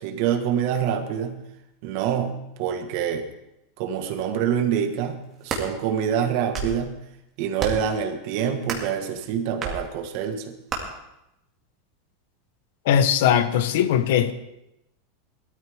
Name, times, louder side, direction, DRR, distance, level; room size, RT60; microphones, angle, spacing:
voice 1, 0.0-1.4 1.8-3.3 3.8-7.0 7.4-10.5, right 8 dB, 50° right, 1.5 m, -26 dB
sound 1, 5.2-5.7 6.3-6.8 7.6-7.9 8.6-8.9 9.6-9.8 10.7-10.8, right 4 dB, 25° right, 2.2 m, -30 dB
voice 2, 12.9-14.3, left 9 dB, 65° left, 1.0 m, -20 dB
18.5 x 13.0 x 3.6 m
supercardioid pair, 170°, 0 cm